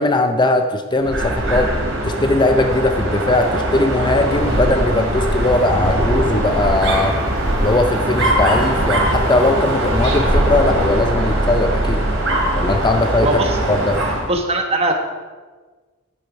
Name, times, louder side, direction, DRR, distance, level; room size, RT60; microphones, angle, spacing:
voice 1, 0.0-1.7 2.0-7.2 7.6-12.0 12.5-13.3 13.7-14.0, left 2 dB, 20° left, 6 dB, 0.5 m, -19 dB
Dog, 1.0-14.3, right 1 dB, 70° right, 2.9 m, -20 dB
voice 2, 13.2-13.6 14.3-14.9, right 2 dB, 30° right, 3 dB, 1.4 m, -19 dB
10.5 x 10.0 x 5.3 m, 1.4 s
head